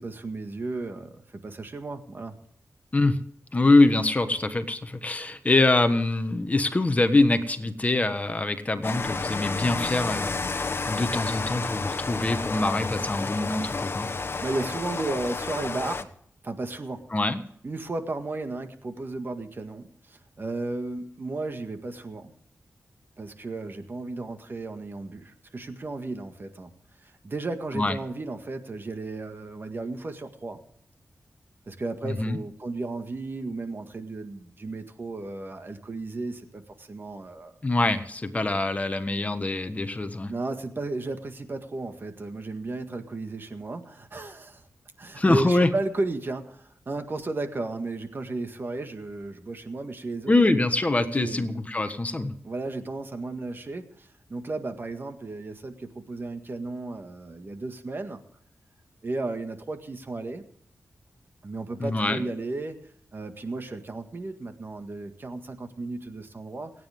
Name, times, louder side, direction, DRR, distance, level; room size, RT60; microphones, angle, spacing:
voice 1, 0.0-2.3 14.4-16.1 16.4-17.1 17.6-22.3 23.2-26.7 27.0-30.6 31.7-37.5 38.4-38.6 40.3-44.7 45.0-50.4 51.1-51.5 52.4-58.2 59.0-60.4 61.4-62.8 63.1-66.7, right 2 dB, 40° right, 7 dB, 1.8 m, -34 dB
voice 2, 3.5-10.4 10.9-14.1 17.1-17.4 27.7-27.9 32.0-32.4 37.6-40.3 45.2-45.7 50.3-52.3 61.8-62.2, left 2 dB, 25° left, 9 dB, 1.3 m, -24 dB
Rain, 8.8-16.0, left 4 dB, 45° left, 1.1 m, -31 dB
28.0 x 9.5 x 3.6 m, 0.65 s
wide cardioid pair, 90°, 5 cm